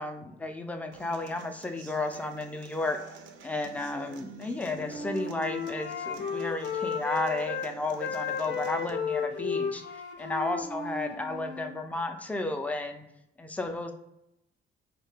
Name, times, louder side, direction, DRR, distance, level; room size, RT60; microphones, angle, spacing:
voice 1, 0.0-3.0 3.4-9.8 10.2-13.0 13.4-13.9, left 2 dB, 5° left, 6 dB, 0.3 m, -33 dB
Human voice / Acoustic guitar, 0.9-8.9, right 5 dB, 70° right, 0.4 m, -49 dB
Wind instrument woodwind instrument, 4.6-7.7 8.0-11.8, left 5 dB, 65° left, 0.5 m, -34 dB
2.7 x 2.2 x 3.2 m, 0.85 s
cardioid pair, 90°, 20 cm